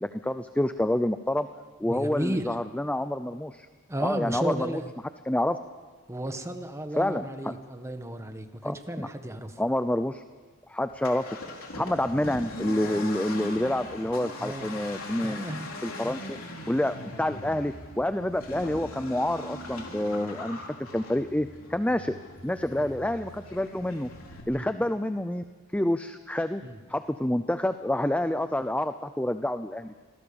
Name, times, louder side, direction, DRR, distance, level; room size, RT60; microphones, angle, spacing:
voice 1, 0.0-1.5 1.8-3.7 4.0-4.8 5.3-5.6 7.0-7.5 8.6-9.1 9.6-10.2 10.7-11.3 11.7-15.4 15.8-16.4 16.7-22.2 22.4-24.1 24.5-25.4 25.7-26.6 26.9-30.0, left 1 dB, 5° left, 10 dB, 0.6 m, -28 dB
voice 2, 1.8-2.5 3.9-4.9 6.1-9.6 11.7-11.8 12.9-13.1 14.4-14.7 15.2-15.7 16.0-16.2 22.7-22.9 24.5-24.7 26.6-26.8, right 1 dB, 15° right, 7 dB, 1.6 m, -34 dB
Accelerating revving vroom, 10.9-24.4, left 2 dB, 80° left, 3.8 m, -41 dB
26.0 x 18.0 x 7.1 m, 1.4 s
head